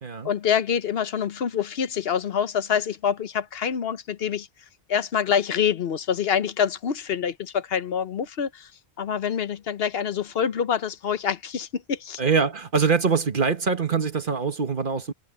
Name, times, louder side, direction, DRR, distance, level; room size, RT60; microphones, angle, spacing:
voice 1, 0.2-4.5 4.9-8.7 9.0-12.2, left 8 dB, 70° left, 1.0 m, -26 dB
voice 2, 12.2-15.1, right 5 dB, 55° right, 1.5 m, -23 dB
omnidirectional pair, 1.1 m